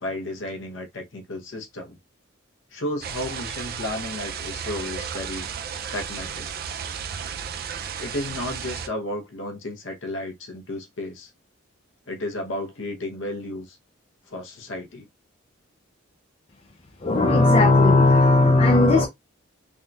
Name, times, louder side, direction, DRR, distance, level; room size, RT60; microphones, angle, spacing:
voice 1, 0.0-2.0 2.7-5.5 5.9-6.5 8.0-11.3 12.1-13.8 14.3-15.1, left 1 dB, 65° left, 0.8 m, -33 dB
sound 1, 3.0-8.9, right 7 dB, 45° right, 0.4 m, -33 dB
voice 2, 17.0-19.1, left 2 dB, 30° left, 0.5 m, -16 dB
3.5 x 2.3 x 2.5 m
head